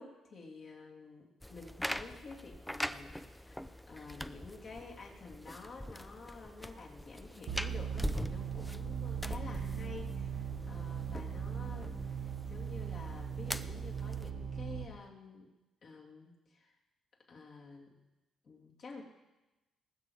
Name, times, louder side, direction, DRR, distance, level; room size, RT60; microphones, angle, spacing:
voice 1, 0.0-3.6 3.9-15.5 15.8-16.7 17.3-17.9 18.4-19.0, left 3 dB, 55° left, -2 dB, 3.0 m, -50 dB
sound 1, 1.4-14.3, equal, 5° left, 0.5 m, -43 dB
sound 2, 7.5-14.9, right 7 dB, 75° right, 1.3 m, -39 dB
19.5 x 7.4 x 4.7 m, 1.0 s
cardioid pair, 90°, 0 cm